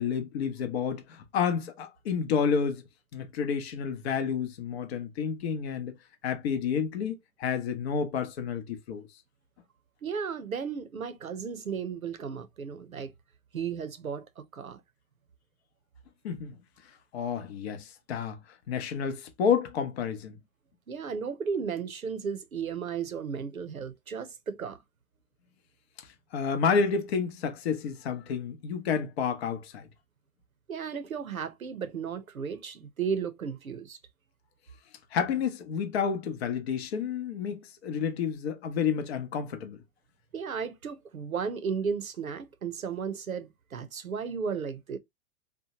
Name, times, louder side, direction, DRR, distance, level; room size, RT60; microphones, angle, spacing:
voice 1, 0.0-2.8 3.1-6.0 6.2-9.0 16.2-16.5 17.1-18.4 18.7-20.4 26.3-29.9 35.1-39.8, left 6 dB, 50° left, 0.7 m, -30 dB
voice 2, 10.0-13.1 13.5-14.8 20.9-24.8 30.7-34.0 40.3-45.0, right 6 dB, 90° right, 0.6 m, -34 dB
2.8 x 2.1 x 2.7 m
figure-of-eight pair, 105°, 40 cm